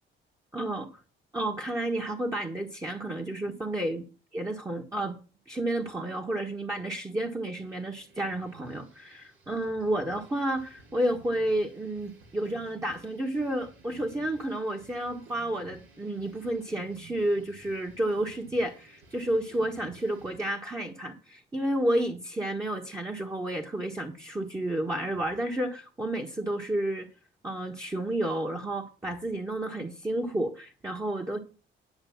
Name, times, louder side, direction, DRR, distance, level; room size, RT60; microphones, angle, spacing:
voice 1, 0.5-0.9 1.3-4.0 4.3-5.2 5.5-27.1 27.4-31.4, right 1 dB, 15° right, -1 dB, 1.4 m, -31 dB
sound 1, 7.6-20.4, right 4 dB, 75° right, 3.0 m, -54 dB
10.5 x 5.1 x 7.2 m, 0.36 s
cardioid pair, 90°, 20 cm